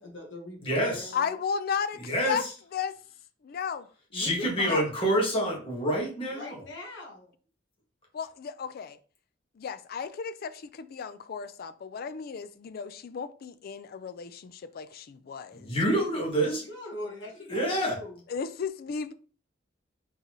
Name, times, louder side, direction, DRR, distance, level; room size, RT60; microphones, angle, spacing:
voice 1, 0.0-1.4 4.1-4.8 6.3-7.3 16.6-18.2, left 1 dB, 85° left, 1.3 m, -41 dB
voice 2, 0.6-1.1 2.0-2.5 4.1-6.6 15.5-16.6 17.5-18.0, equal, 30° left, 1.7 m, -27 dB
voice 3, 1.1-2.4 2.7-2.9 3.4-3.9 4.7-4.8 8.1-9.0 9.6-15.8 18.3-19.1, left 6 dB, 55° left, 0.4 m, -34 dB
4.0 x 3.9 x 3.0 m
head